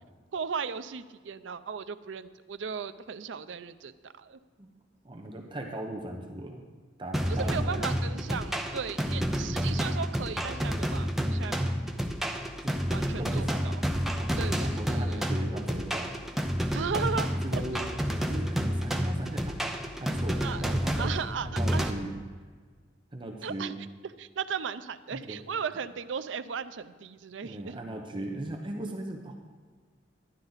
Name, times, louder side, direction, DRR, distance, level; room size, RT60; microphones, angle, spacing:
voice 1, 0.3-4.4 7.3-11.6 12.9-13.8 14.4-15.3 16.7-17.6 20.4-20.6 21.0-21.9 23.4-23.8 24.2-27.8, right 6 dB, 90° right, 13 dB, 0.5 m, -36 dB
voice 2, 5.0-6.6 7.0-7.8 9.0-9.8 12.6-13.7 14.2-16.1 17.3-17.9 18.2-19.6 20.0-21.1 21.4-22.1 23.1-23.7 25.3-25.4 27.4-29.3, right 1 dB, 25° right, 1 dB, 0.9 m, -38 dB
sound 1, 7.1-21.9, equal, ahead, 0.7 m, -30 dB
11.5 x 11.0 x 4.0 m, 1.5 s
head